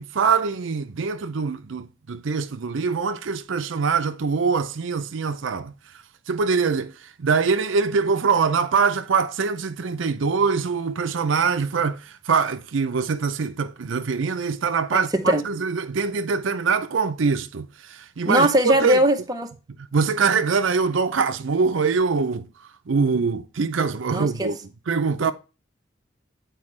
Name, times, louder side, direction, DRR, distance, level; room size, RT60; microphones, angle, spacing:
voice 1, 0.0-5.9 6.3-19.0 19.8-22.5 22.9-24.6 24.9-25.3, right 5 dB, 75° right, 0.5 m, -23 dB
voice 2, 18.2-19.5 24.1-24.5 25.3-25.4, right 1 dB, 20° right, 0.7 m, -20 dB
8.8 x 4.4 x 3.2 m
head